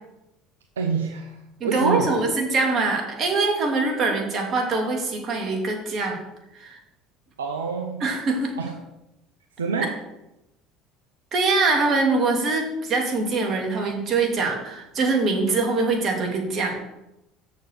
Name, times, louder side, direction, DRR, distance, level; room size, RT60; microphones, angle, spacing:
voice 1, 0.8-2.1 7.4-8.0 8.6-8.8 9.6-10.0, right 5 dB, 90° right, 4 dB, 0.8 m, -27 dB
voice 2, 1.6-6.2 6.5-6.8 8.0-8.6 11.3-16.7, right 3 dB, 50° right, 2 dB, 2.7 m, -23 dB
7.0 x 6.6 x 6.7 m, 0.91 s
hypercardioid pair, 70°, 0 cm